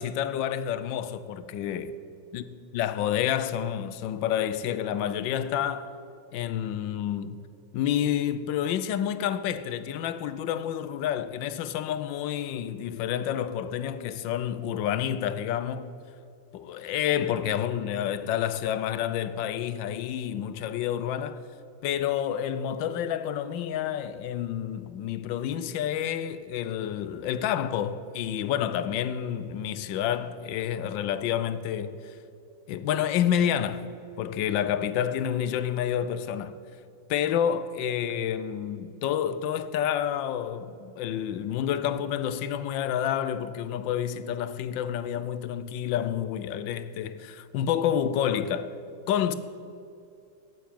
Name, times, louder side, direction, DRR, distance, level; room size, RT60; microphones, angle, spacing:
voice 1, 0.0-1.9 2.3-5.9 6.3-7.4 7.7-15.9 16.5-21.4 21.8-32.1 32.7-33.9 34.2-36.5 37.1-48.7 49.1-49.3, left 9 dB, 90° left, 1.4 m, -29 dB
9.2 x 8.2 x 8.9 m
omnidirectional pair, 2.0 m